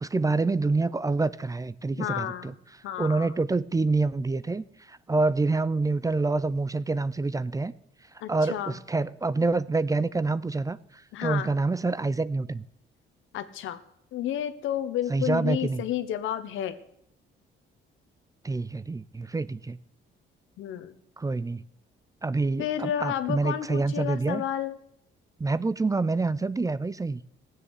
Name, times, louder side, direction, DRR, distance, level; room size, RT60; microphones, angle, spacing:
voice 1, 0.0-2.5 3.0-7.7 8.3-10.8 11.2-12.6 15.1-15.8 18.4-19.8 21.2-21.6 22.2-24.4 25.4-27.2, right 3 dB, 15° right, 18 dB, 0.5 m, -27 dB
voice 2, 2.0-2.6 2.8-3.3 8.2-8.8 11.1-11.5 13.3-13.8 14.1-16.8 20.6-21.0 22.6-24.8, left 11 dB, 85° left, 11 dB, 1.1 m, -31 dB
15.0 x 7.6 x 8.2 m, 0.76 s
cardioid pair, 90°, 20 cm